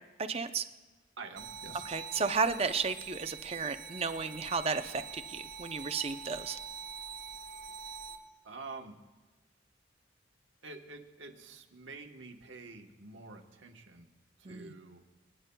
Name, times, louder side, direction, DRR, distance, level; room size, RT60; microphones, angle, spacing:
voice 1, 0.2-0.6 1.8-6.6 14.5-14.7, right 5 dB, 30° right, 9 dB, 0.6 m, -33 dB
voice 2, 1.2-1.8 8.4-9.0 10.6-14.1 14.5-15.0, right 3 dB, 75° right, 3 dB, 1.2 m, -47 dB
sound 1, 1.4-8.2, right 6 dB, 55° right, 1.6 m, -45 dB
25.5 x 9.8 x 2.3 m, 1.2 s
head